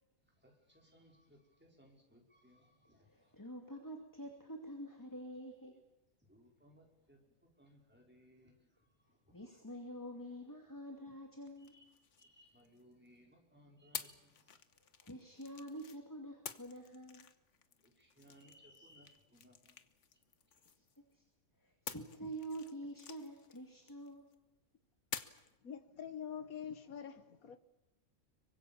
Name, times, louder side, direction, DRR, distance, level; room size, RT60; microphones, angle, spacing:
voice 1, 0.3-3.4 6.2-9.3 11.6-14.6 17.8-19.8, equal, 5° right, 4.9 m, -65 dB
voice 2, 3.0-5.8 9.3-11.8 15.0-17.3 20.7-21.2 21.6-24.3, right 1 dB, 15° left, 2.4 m, -47 dB
sound 1, 11.6-13.1 13.9-16.0 16.5-21.1 21.9-24.4 25.1-25.6, left 7 dB, 60° left, 1.4 m, -50 dB
voice 3, 25.6-27.6, left 8 dB, 85° left, 1.7 m, -45 dB
25.5 x 24.0 x 7.1 m
omnidirectional pair, 1.5 m